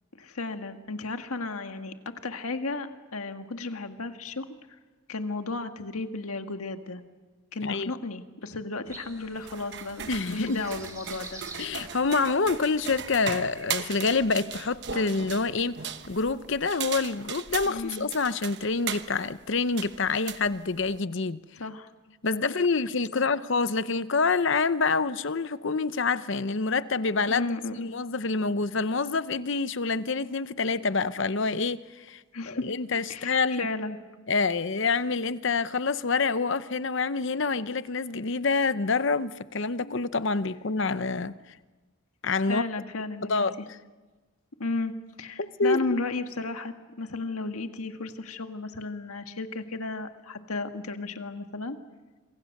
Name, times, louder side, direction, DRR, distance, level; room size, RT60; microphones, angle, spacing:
voice 1, 0.2-4.4 5.1-7.0 7.5-11.4 17.6-18.1 21.6-21.9 23.2-23.3 27.3-27.9 32.3-32.7 33.1-34.0 39.8-39.9 42.5-43.5 44.6-44.9 45.2-51.8, left 3 dB, 90° left, 1.7 m, -34 dB
voice 2, 7.6-7.9 10.1-10.6 11.6-15.8 16.1-21.4 22.2-27.5 27.7-33.7 34.3-41.3 42.2-42.6 43.3-43.5 45.4-45.8, left 4 dB, 55° left, 0.8 m, -27 dB
sound 1, 8.9-14.2, right 2 dB, 15° right, 2.9 m, -48 dB
sound 2, 9.4-21.0, right 8 dB, 50° right, 1.1 m, -38 dB
27.0 x 24.5 x 6.6 m
head